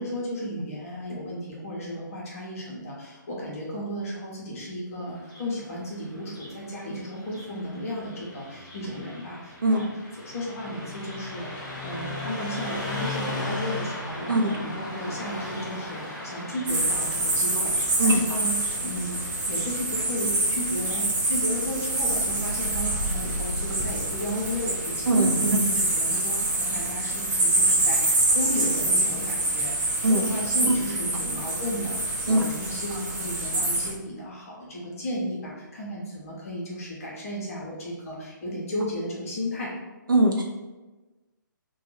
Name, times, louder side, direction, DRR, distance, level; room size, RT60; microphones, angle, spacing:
voice 1, 0.0-9.9 10.2-39.7, equal, 45° left, -4 dB, 0.9 m, -34 dB
Car passing by, 5.1-21.1, left 2 dB, 25° left, 1.2 m, -38 dB
sound 1, 16.7-33.9, right 2 dB, 10° right, 0.5 m, -26 dB
voice 2, 25.1-25.6 30.0-30.2 32.3-32.5 40.1-40.4, right 1 dB, 75° right, 1 dB, 0.5 m, -21 dB
2.7 x 2.2 x 3.2 m, 1.2 s
figure-of-eight pair, 135°, 11 cm